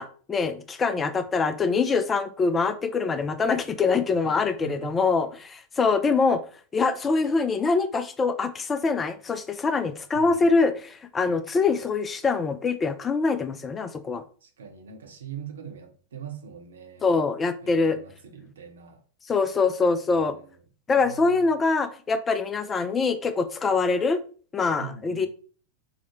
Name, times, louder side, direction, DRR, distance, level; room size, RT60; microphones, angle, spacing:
voice 1, 0.0-6.4 6.7-14.2 17.0-18.0 19.3-20.4 20.9-24.2 24.5-25.3, left 4 dB, 20° left, 0.3 m, -24 dB
voice 2, 4.2-4.9 10.1-10.4 14.4-17.1 17.6-19.0 20.0-20.6 21.0-21.6 24.8-25.3, right 7 dB, 65° right, 0.7 m, -42 dB
4.6 x 2.1 x 2.9 m
figure-of-eight pair, 90°, 0 cm